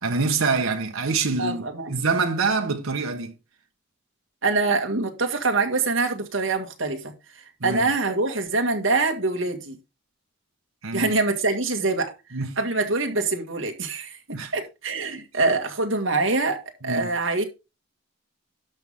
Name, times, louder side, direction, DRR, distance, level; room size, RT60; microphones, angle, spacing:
voice 1, 0.0-1.6 1.9-3.3 7.6-7.8 10.8-11.1 12.3-12.6 14.3-14.5 16.8-17.1, right 4 dB, 90° right, 1.2 m, -25 dB
voice 2, 1.4-1.9 4.4-7.1 7.6-9.8 10.9-12.1 12.6-17.5, right 3 dB, 70° right, 2.0 m, -24 dB
12.0 x 5.6 x 3.6 m
head